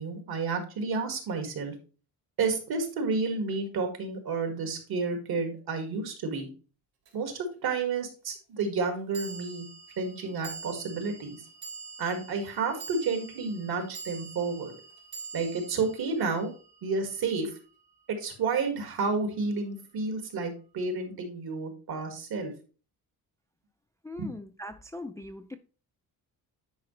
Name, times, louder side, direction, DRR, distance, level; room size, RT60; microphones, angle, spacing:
voice 1, 0.0-1.7 2.4-6.5 7.1-9.7 10.0-11.4 12.0-14.7 15.3-16.5 16.8-17.5 18.1-22.5 24.2-24.3, right 4 dB, 70° right, 2.1 m, -31 dB
sound 1, 7.0-7.1 9.1-17.6, right 4 dB, 90° right, 3.2 m, -45 dB
voice 2, 24.0-25.6, left 1 dB, 10° left, 0.3 m, -41 dB
9.6 x 4.9 x 3.2 m
cardioid pair, 155°, 38 cm